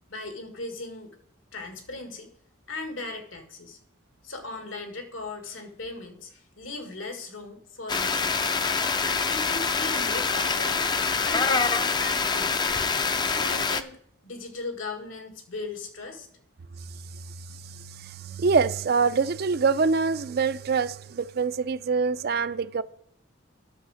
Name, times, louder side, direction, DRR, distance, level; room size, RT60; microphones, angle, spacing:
voice 1, 0.1-1.2 1.5-2.3 2.7-3.8 4.2-8.5 9.0-10.8 11.2-12.7 13.2-14.0 14.2-16.3, left 3 dB, 85° left, 1.9 m, -38 dB
sound 1, 7.9-13.8, left 4 dB, 20° left, 0.4 m, -25 dB
voice 2, 17.7-22.8, right 5 dB, 50° right, 0.4 m, -25 dB
10.5 x 6.4 x 6.3 m
head